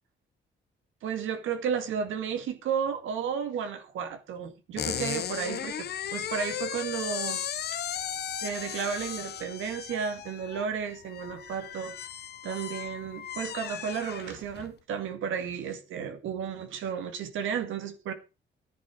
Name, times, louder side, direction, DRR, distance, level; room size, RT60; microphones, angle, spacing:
voice 1, 1.0-7.4 7.7-7.8 8.4-12.0 12.4-18.1, right 7 dB, 85° right, 2.0 m, -33 dB
sound 1, 4.8-14.7, left 9 dB, 55° left, 0.8 m, -36 dB
11.0 x 10.0 x 4.8 m
cardioid pair, 90°, 20 cm